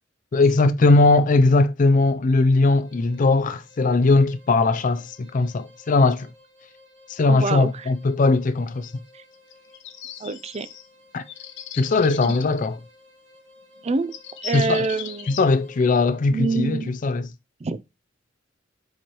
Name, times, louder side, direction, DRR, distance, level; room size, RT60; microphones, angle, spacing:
voice 1, 0.3-6.3 7.1-8.9 11.1-11.2 11.8-12.8 14.5-14.9 15.3-17.3, left 3 dB, 40° left, 0.4 m, -19 dB
sound 1, 2.7-16.4, left 1 dB, 70° right, 2.5 m, -54 dB
voice 2, 7.3-7.9 10.2-10.7 13.8-14.1 14.4-15.3 16.3-16.9 17.6-17.8, right 4 dB, 35° right, 0.4 m, -26 dB
sound 2, 9.3-10.9 11.3-12.6 13.7-13.8 14.1-15.5, left 9 dB, 65° left, 0.9 m, -38 dB
7.2 x 4.5 x 3.0 m
head